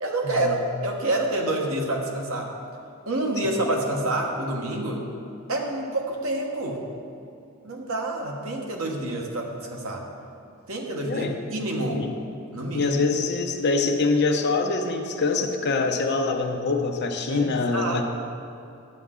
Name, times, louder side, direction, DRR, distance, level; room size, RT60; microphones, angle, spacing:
voice 1, 0.0-2.6 3.1-5.0 5.5-6.8 7.6-10.0 10.7-12.0 12.5-13.0 17.3-18.0, right 1 dB, 75° right, 0 dB, 1.2 m, -28 dB
voice 2, 12.7-18.0, left 3 dB, 55° left, 4 dB, 0.7 m, -24 dB
10.5 x 7.2 x 3.7 m, 2.6 s
head